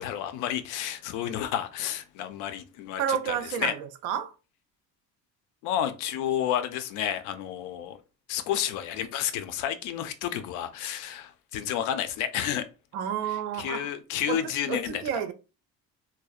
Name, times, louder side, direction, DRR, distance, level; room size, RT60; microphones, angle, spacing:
voice 1, 0.0-3.7 5.6-8.0 8.3-12.6 13.2-15.0, left 10 dB, 75° left, 0.5 m, -31 dB
voice 2, 2.9-4.3 12.9-13.9 14.3-14.4 14.7-15.3, right 9 dB, 70° right, 0.5 m, -30 dB
2.7 x 2.0 x 2.3 m
cardioid pair, 175°, 30 cm